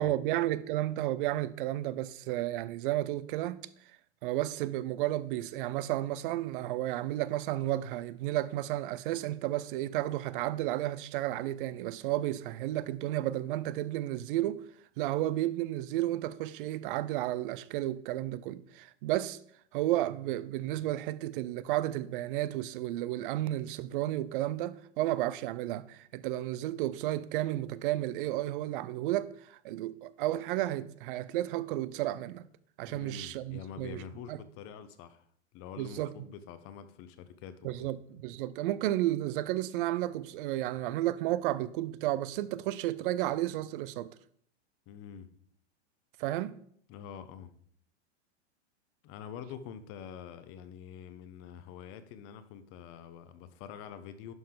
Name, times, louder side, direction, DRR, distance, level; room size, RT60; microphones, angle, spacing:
voice 1, 0.0-3.7 4.2-14.6 15.0-19.4 19.7-32.4 32.8-34.0 34.3-34.4 35.8-36.1 37.6-44.1 46.2-46.6, right 14 dB, 50° right, 0.6 m, -32 dB
voice 2, 32.9-35.3 35.5-37.9 44.9-45.3 46.9-47.5 49.0-54.3, left 8 dB, 40° left, 1.0 m, -46 dB
11.0 x 5.5 x 3.9 m
hypercardioid pair, 120°, 35 cm